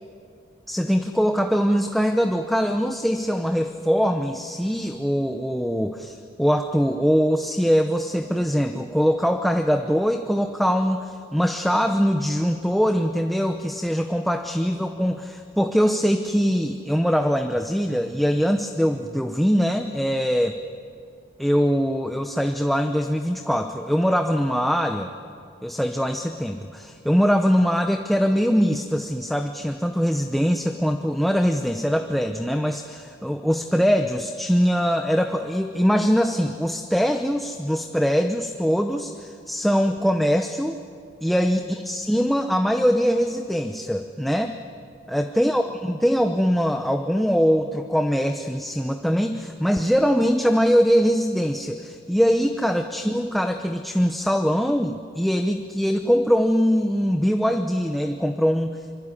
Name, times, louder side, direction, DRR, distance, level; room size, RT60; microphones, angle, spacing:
voice 1, 0.7-20.5 21.4-25.1 25.6-40.8 41.2-44.6 45.1-58.8, equal, ahead, 5 dB, 0.8 m, -22 dB
24.5 x 24.5 x 9.8 m, 2.4 s
head